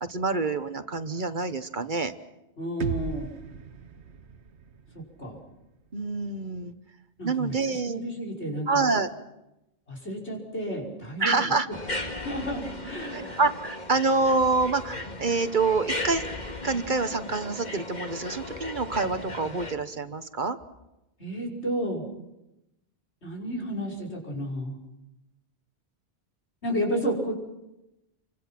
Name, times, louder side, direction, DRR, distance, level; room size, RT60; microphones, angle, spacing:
voice 1, 0.0-2.1 5.9-6.7 7.2-8.0 8.7-9.1 11.2-11.7 13.1-16.2 16.6-20.6, right 3 dB, 45° right, 10 dB, 1.2 m, -26 dB
voice 2, 2.6-3.3 4.9-5.4 7.2-8.9 9.9-11.8 12.1-13.4 21.2-22.0 23.2-24.8 26.6-27.3, equal, 80° left, 1 dB, 5.9 m, -32 dB
sound 1, 2.8-6.7, right 6 dB, 75° right, 1.4 m, -38 dB
sound 2, 11.7-19.7, left 2 dB, 40° left, 2.2 m, -36 dB
29.0 x 25.0 x 6.0 m, 0.93 s
omnidirectional pair, 1.1 m